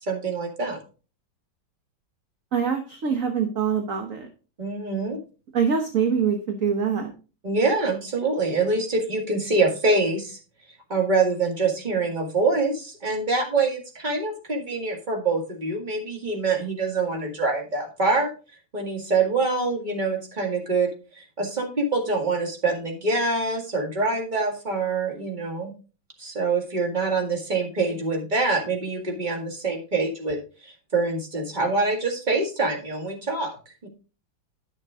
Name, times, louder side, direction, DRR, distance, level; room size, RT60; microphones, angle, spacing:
voice 1, 0.1-0.8 4.6-5.2 7.4-10.4 10.9-18.3 18.7-25.7 26.2-33.5 33.8-33.9, right 3 dB, 25° right, 2 dB, 2.0 m, -25 dB
voice 2, 2.5-4.3 5.5-7.1, right 6 dB, 50° right, 5 dB, 1.3 m, -24 dB
11.0 x 6.6 x 3.6 m, 0.34 s
omnidirectional pair, 2.1 m